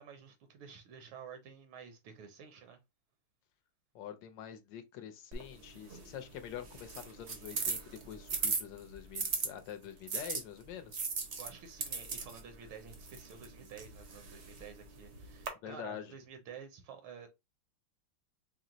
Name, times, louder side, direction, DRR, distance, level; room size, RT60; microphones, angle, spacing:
voice 1, 0.0-2.8 11.4-17.3, right 7 dB, 80° right, 1.5 m, -51 dB
voice 2, 3.9-11.0 15.6-16.1, left 9 dB, 75° left, 1.2 m, -46 dB
sound 1, 5.3-9.5 10.1-15.5, right 4 dB, 55° right, 0.7 m, -39 dB
4.4 x 2.0 x 3.7 m
omnidirectional pair, 2.3 m